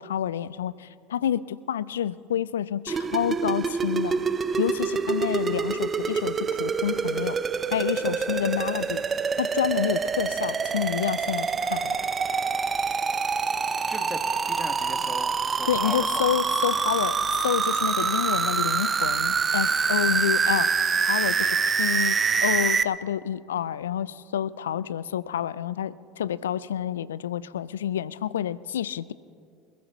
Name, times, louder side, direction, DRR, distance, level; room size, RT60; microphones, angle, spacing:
voice 1, 0.0-4.2 4.6-7.4 7.7-9.0 9.4-12.0 15.7-20.7 21.0-29.1, left 10 dB, 80° left, 19 dB, 0.4 m, -29 dB
sound 1, 2.9-22.8, right 5 dB, 25° right, 0.6 m, -26 dB
voice 2, 8.0-8.6 13.9-14.2 14.5-16.2, left 1 dB, 10° left, 5 dB, 1.8 m, -38 dB
27.0 x 14.5 x 3.1 m, 2.4 s
hypercardioid pair, 75°, 0 cm